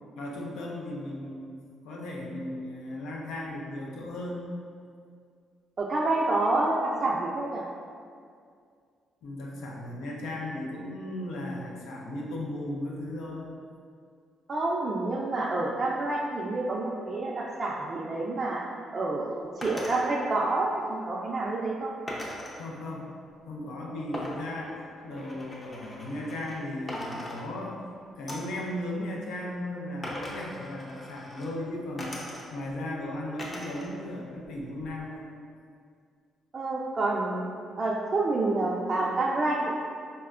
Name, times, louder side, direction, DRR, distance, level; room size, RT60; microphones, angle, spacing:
voice 1, 0.2-4.5 9.2-13.5 22.6-23.1 23.5-27.8 28.2-32.2 32.5-35.3, left 1 dB, 85° left, -2 dB, 0.5 m, -36 dB
voice 2, 5.8-7.6 14.5-18.6 18.9-19.3 19.6-21.9 36.5-37.4 37.8-39.8, right 2 dB, 40° right, -5 dB, 0.3 m, -28 dB
sound 1, 19.6-20.0 22.1-22.6 24.1-26.6 26.9-27.8 28.3-28.6 30.0-31.5 32.0-32.7 33.4-33.9 34.3-35.1, left 1 dB, 25° left, 0.6 m, -40 dB
4.1 x 2.1 x 2.3 m, 2.2 s
cardioid pair, 90°, 0 cm